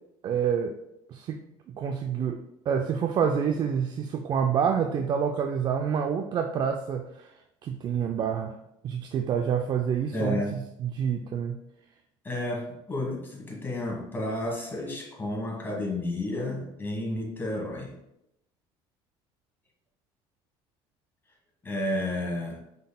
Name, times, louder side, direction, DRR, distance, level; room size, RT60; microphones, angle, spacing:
voice 1, 0.2-0.8 1.1-1.4 1.7-8.6 8.8-11.6, right 7 dB, 40° right, 5 dB, 0.3 m, -28 dB
voice 2, 10.1-10.5 12.2-17.9 21.6-22.6, left 1 dB, 20° left, -1 dB, 1.4 m, -31 dB
5.0 x 3.9 x 2.2 m, 0.83 s
cardioid pair, 110°, 11 cm